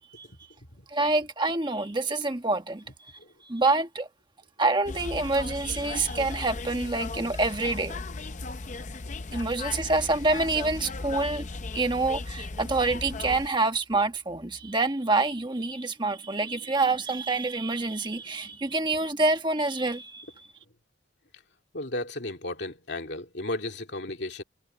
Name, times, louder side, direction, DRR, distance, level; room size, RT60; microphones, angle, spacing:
voice 1, 0.9-3.1 3.4-4.1 4.6-8.0 9.3-11.5 11.7-20.5, right 3 dB, 20° right, 1.3 m, -27 dB
sound 1, 4.8-13.5, left 3 dB, 35° left, 0.6 m, -36 dB
voice 2, 21.7-24.4, left 2 dB, 55° left, 2.8 m, -34 dB
head